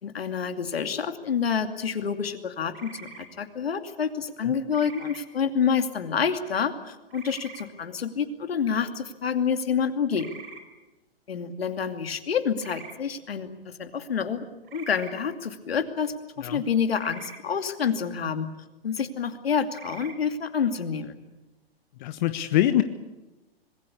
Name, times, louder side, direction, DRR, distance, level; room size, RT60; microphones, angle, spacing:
voice 1, 0.0-2.9 3.4-10.3 11.3-14.4 14.7-18.5 18.8-21.1, left 7 dB, 75° left, 8 dB, 2.6 m, -28 dB
sound 1, 2.7-3.3 4.7-5.2 7.1-7.6 10.1-10.6 12.6-12.9 14.6-15.1 16.9-17.4 19.7-20.1, right 6 dB, 60° right, 5.0 m, -44 dB
voice 2, 22.0-22.8, left 12 dB, 45° left, 10 dB, 1.3 m, -24 dB
26.0 x 20.5 x 8.4 m, 1.1 s
figure-of-eight pair, 115°, 31 cm